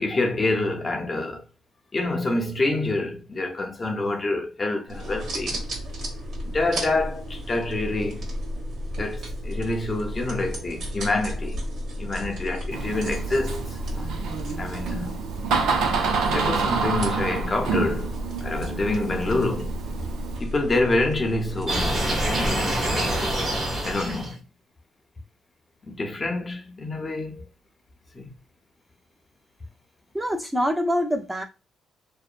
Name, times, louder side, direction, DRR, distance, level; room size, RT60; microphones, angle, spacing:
voice 1, 0.0-1.4 1.9-5.7 6.5-8.3 9.0-11.6 12.0-14.1 14.6-15.2 16.3-18.1 18.4-19.8 20.4-22.0 22.3-22.8 23.8-24.4 25.8-27.4 28.1-28.3, left 2 dB, 30° left, 0.7 m, -27 dB
sound 1, 4.9-22.5, equal, 65° right, 1.3 m, -33 dB
Door, 12.7-20.4, right 4 dB, 85° right, 0.6 m, -28 dB
sound 2, 21.7-24.3, right 1 dB, 35° right, 1.1 m, -25 dB
voice 2, 30.1-31.4, equal, 10° right, 0.6 m, -25 dB
2.9 x 2.0 x 2.4 m
cardioid pair, 90°, 0 cm